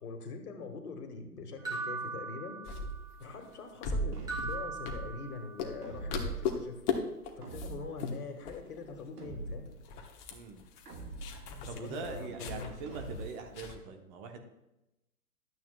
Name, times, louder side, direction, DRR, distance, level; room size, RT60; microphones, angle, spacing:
voice 1, 0.0-2.6 3.2-6.8 7.4-9.7 11.7-12.7, left 4 dB, 70° left, 5 dB, 1.8 m, -43 dB
sound 1, 1.6-3.1 4.3-5.7, right 4 dB, 10° right, 2.0 m, -39 dB
sound 2, 2.6-5.3 5.6-5.8 6.1-7.0 7.2-7.7 8.0-8.1 8.4-9.0 9.3-9.4 9.7-13.7, left 4 dB, 30° left, 1.1 m, -38 dB
sound 3, 4.1-4.8 5.8-6.5 7.4-8.0 9.2-9.8 10.8-11.5 12.8-13.5, right 2 dB, 70° right, 1.9 m, -43 dB
voice 2, 10.3-10.6 11.6-14.4, right 4 dB, 30° right, 5 dB, 1.1 m, -42 dB
12.0 x 8.7 x 2.3 m, 0.92 s
hypercardioid pair, 120°, 47 cm